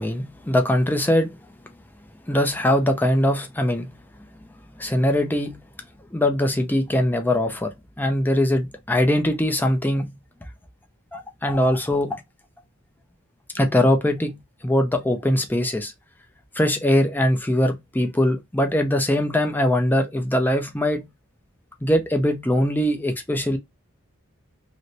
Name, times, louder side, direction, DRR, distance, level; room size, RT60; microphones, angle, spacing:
voice 1, 0.0-1.3 2.3-3.9 4.8-5.6 6.1-10.1 11.1-12.2 13.5-15.9 16.6-21.1 21.8-23.6, left 1 dB, 10° left, 0.6 m, -21 dB
3.1 x 3.1 x 2.7 m
head